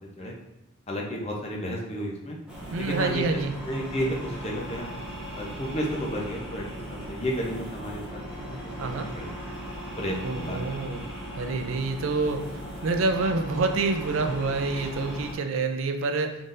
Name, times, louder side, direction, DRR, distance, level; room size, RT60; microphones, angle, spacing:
voice 1, 0.9-2.4 2.8-3.2 3.6-4.9 5.3-8.2 8.4-8.9 9.1-9.3 10.0-10.6 14.7-14.9, equal, 30° left, -1 dB, 0.7 m, -32 dB
sound 1, 2.5-15.3, equal, 5° right, 0.9 m, -38 dB
voice 2, 2.7-3.5 8.8-9.1 10.2-11.0 11.4-12.4 12.8-16.4, right 3 dB, 70° right, 6 dB, 0.4 m, -27 dB
3.8 x 3.8 x 2.5 m, 0.89 s
head